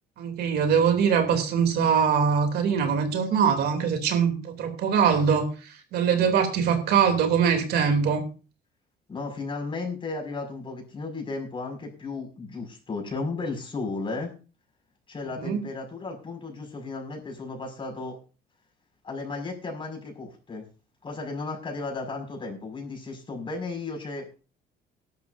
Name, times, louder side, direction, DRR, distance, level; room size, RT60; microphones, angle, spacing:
voice 1, 0.2-5.5 5.9-8.2 15.3-15.6, right 7 dB, 70° right, 5 dB, 3.0 m, -22 dB
voice 2, 9.1-14.3 15.1-18.2 19.0-20.6 21.0-24.3, left 3 dB, 30° left, 1 dB, 5.8 m, -34 dB
19.0 x 12.0 x 2.7 m, 0.34 s
cardioid pair, 110°, 17 cm